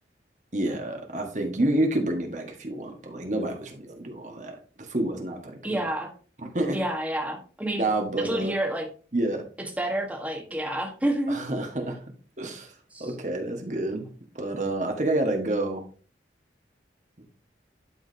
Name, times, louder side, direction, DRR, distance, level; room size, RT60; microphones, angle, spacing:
voice 1, 0.5-5.8 6.4-6.8 7.8-8.5 9.1-9.4 11.3-12.0 12.4-12.7 13.0-14.1 14.3-15.8, right 1 dB, 40° right, 3 dB, 1.4 m, -28 dB
voice 2, 5.6-6.1 6.7-7.8 8.2-8.9 9.6-11.4 12.9-13.1, right 1 dB, 10° right, 2 dB, 1.3 m, -29 dB
11.5 x 4.8 x 2.7 m, 0.39 s
head